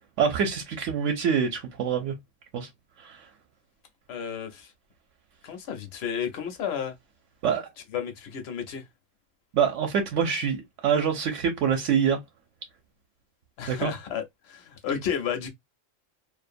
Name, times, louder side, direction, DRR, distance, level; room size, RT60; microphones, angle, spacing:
voice 1, 0.2-2.1 2.5-2.7 3.0-3.2 7.4-7.7 9.5-12.2 13.7-13.9, right 7 dB, 75° right, 0.9 m, -25 dB
voice 2, 4.1-4.7 5.4-6.9 7.9-8.8 13.6-15.5, left 8 dB, 60° left, 0.8 m, -32 dB
2.5 x 2.1 x 2.5 m
omnidirectional pair, 1.3 m